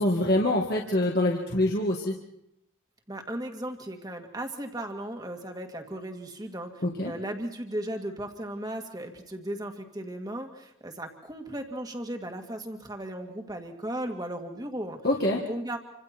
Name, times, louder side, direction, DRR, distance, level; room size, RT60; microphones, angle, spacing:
voice 1, 0.0-2.1 6.8-7.1 15.0-15.4, left 1 dB, 50° left, -1 dB, 2.0 m, -25 dB
voice 2, 3.1-15.0 15.3-15.8, right 1 dB, 20° right, 4 dB, 2.2 m, -36 dB
28.0 x 26.0 x 4.5 m, 0.79 s
head